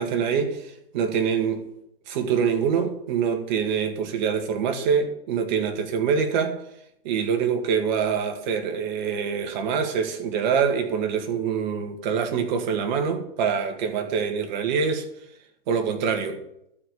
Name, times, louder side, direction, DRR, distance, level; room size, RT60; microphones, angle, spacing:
voice 1, 0.0-1.7 2.1-6.6 7.0-15.1 15.7-16.4, right 6 dB, 50° right, 1.9 m, -25 dB
12.0 x 5.0 x 8.8 m
hypercardioid pair, 120°, 30 cm